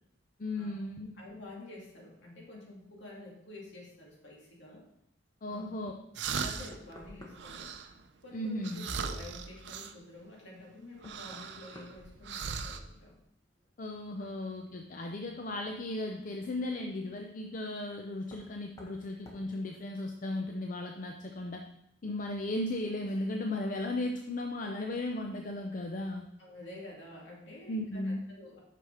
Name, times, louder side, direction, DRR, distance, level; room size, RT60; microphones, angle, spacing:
voice 1, 0.4-1.2 5.4-5.9 8.3-8.9 13.8-21.6 22.0-26.3 27.7-28.3, left 1 dB, 45° left, 4 dB, 0.5 m, -36 dB
voice 2, 1.1-4.8 5.5-5.7 6.4-7.7 8.2-13.2 14.2-14.3 26.4-28.6, left 1 dB, 65° left, -3 dB, 2.4 m, -49 dB
sound 1, 6.1-6.9 7.3-8.0 8.6-9.9 11.0-12.0 12.2-12.8, right 6 dB, 65° right, 0.5 m, -38 dB
Knock, 6.7-7.7 10.1-10.2 11.0-12.8 13.1-13.7 15.4-15.5 18.2-18.5 18.8-19.0 19.3-19.5, equal, 20° left, 1.3 m, -53 dB
6.2 x 5.9 x 5.0 m, 0.81 s
head